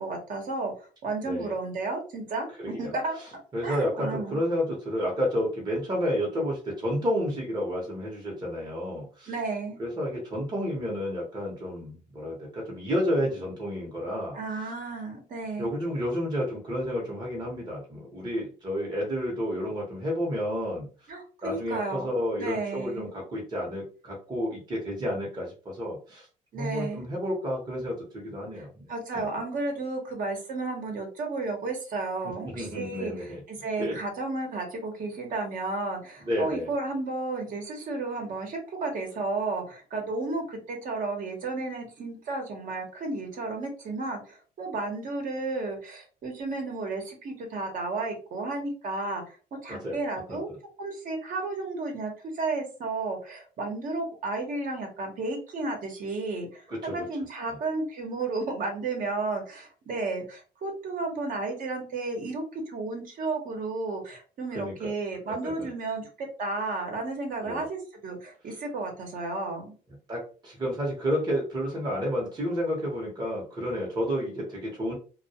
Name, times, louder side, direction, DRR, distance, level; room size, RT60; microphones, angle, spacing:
voice 1, 0.0-3.2 3.6-4.4 9.3-9.8 14.3-15.7 21.1-22.1 22.4-23.1 26.5-27.0 28.6-49.4 49.6-50.5 50.8-56.6 56.9-69.7, right 3 dB, 55° right, 3 dB, 0.9 m, -33 dB
voice 2, 2.6-9.3 9.8-14.7 15.6-21.1 21.4-26.3 26.5-28.8 29.1-29.3 32.2-33.4 33.8-34.0 36.2-36.7 49.7-50.0 50.3-50.4 56.7-57.0 64.5-64.7 65.3-65.5 67.4-67.6 70.1-74.9, equal, 25° right, -3 dB, 0.8 m, -31 dB
2.2 x 2.2 x 2.7 m, 0.37 s
cardioid pair, 110°, 17 cm